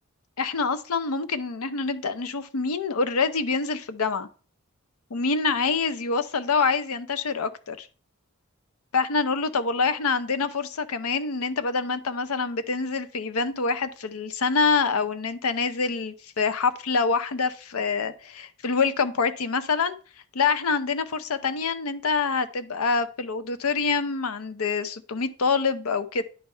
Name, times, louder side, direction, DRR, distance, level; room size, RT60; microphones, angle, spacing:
voice 1, 0.4-4.3 5.1-7.9 8.9-20.0 20.3-26.2, left 4 dB, 85° left, 12 dB, 0.6 m, -26 dB
10.0 x 3.4 x 4.3 m, 0.39 s
head